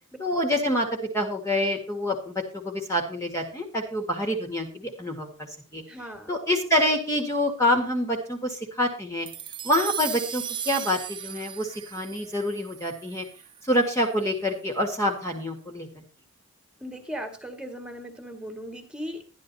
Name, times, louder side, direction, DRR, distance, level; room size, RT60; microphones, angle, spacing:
voice 1, 0.2-0.9 1.1-5.8 6.3-9.3 9.6-13.3 13.6-15.9, left 1 dB, 15° left, 2 dB, 1.9 m, -26 dB
voice 2, 5.9-6.3 16.8-19.3, equal, 5° right, 4 dB, 2.1 m, -37 dB
sound 1, 9.3-13.8, right 9 dB, 20° right, 0.7 m, -36 dB
13.0 x 11.0 x 4.1 m, 0.35 s
head